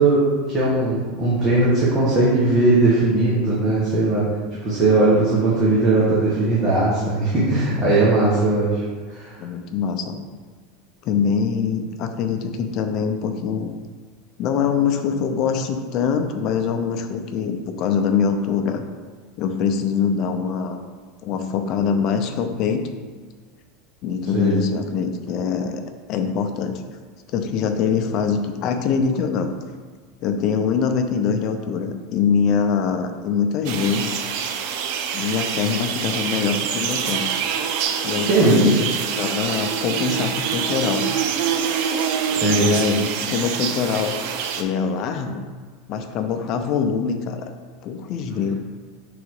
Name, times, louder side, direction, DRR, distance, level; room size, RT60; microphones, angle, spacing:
voice 1, 0.0-4.2 4.6-8.8 9.1-9.4 24.3-24.5 38.2-38.7 42.3-42.7, right 2 dB, 25° right, -8 dB, 1.6 m, -18 dB
voice 2, 9.4-10.2 11.0-13.7 14.4-18.8 19.4-20.8 21.2-22.8 24.0-25.8 26.1-26.8 27.3-29.5 30.2-34.2 35.1-37.2 38.0-41.1 42.5-44.1 44.6-45.4 45.9-47.5 47.8-48.5, left 6 dB, 45° left, 6 dB, 0.6 m, -23 dB
sound 1, 33.6-44.6, right 7 dB, 60° right, 0.6 m, -25 dB
6.2 x 3.9 x 4.8 m, 1.5 s
supercardioid pair, 140°, 0 cm